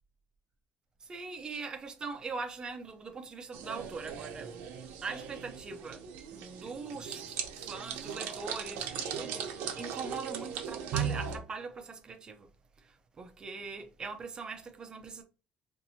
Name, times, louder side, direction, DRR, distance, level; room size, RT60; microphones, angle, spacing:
voice 1, 1.0-4.5 5.0-6.0 6.3-12.5 12.8-15.2, right 4 dB, 25° right, 0.6 m, -41 dB
sound 1, 3.5-11.4, right 7 dB, 90° right, 0.8 m, -38 dB
4.0 x 2.6 x 2.8 m
cardioid pair, 150°, 3 cm